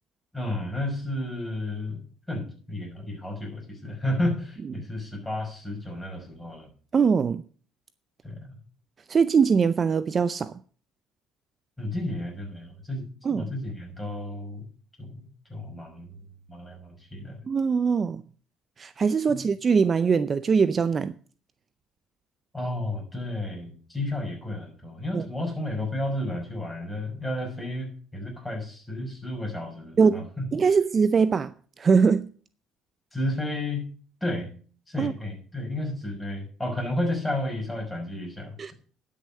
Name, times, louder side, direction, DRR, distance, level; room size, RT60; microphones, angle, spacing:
voice 1, 0.3-6.7 8.2-8.4 11.8-14.7 15.0-15.2 15.5-16.1 16.5-17.4 19.3-19.5 22.5-30.4 33.1-33.9 34.2-34.5 34.9-38.7, left 1 dB, 10° left, 5.8 m, -32 dB
voice 2, 6.9-7.4 9.1-10.5 13.2-13.5 17.5-18.2 18.8-21.1 25.1-25.2 30.0-32.3 35.0-35.1 38.6-38.7, right 5 dB, 35° right, 0.5 m, -22 dB
11.5 x 6.6 x 6.6 m
cardioid pair, 100°, 0 cm